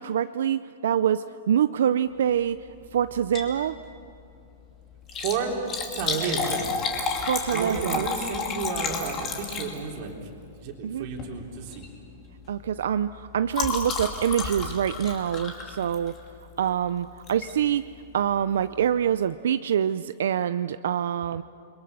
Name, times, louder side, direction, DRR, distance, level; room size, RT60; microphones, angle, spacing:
voice 1, 0.0-3.8 7.3-8.1 10.8-11.1 12.5-16.2 16.6-17.8 18.1-21.4, right 9 dB, 80° right, 12 dB, 0.5 m, -25 dB
Liquid, 3.2-3.6 3.9-4.0 5.0-10.1 11.1-11.4 11.7-11.9 12.2-16.3 17.3-17.5 18.1-18.2 18.3-18.4, left 5 dB, 20° left, 2.6 m, -31 dB
voice 2, 5.1-5.6 6.0-6.7 7.5-10.3 10.6-11.9, right 5 dB, 40° right, 1 dB, 3.5 m, -31 dB
29.5 x 22.5 x 6.8 m, 2.6 s
supercardioid pair, 170°, 0 cm